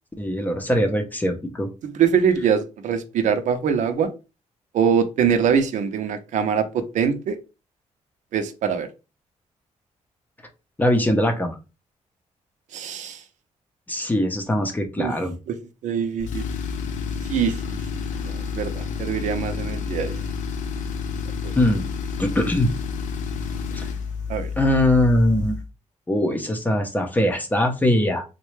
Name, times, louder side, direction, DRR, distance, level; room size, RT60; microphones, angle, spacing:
voice 1, 0.2-1.7 10.8-11.6 13.9-15.3 21.6-21.9 22.2-22.7 23.7-23.8 24.6-25.5 26.1-28.2, left 1 dB, 15° left, 0.6 m, -21 dB
voice 2, 1.8-4.1 4.7-7.4 8.3-8.9 12.7-13.2 15.0-15.1 15.5-15.6 15.8-16.4 17.3-20.2 21.4-21.5 24.3-24.5, right 7 dB, 85° right, 0.6 m, -23 dB
Tools, 16.2-25.7, left 6 dB, 85° left, 0.4 m, -30 dB
3.9 x 2.2 x 3.1 m
wide cardioid pair, 165°, 12 cm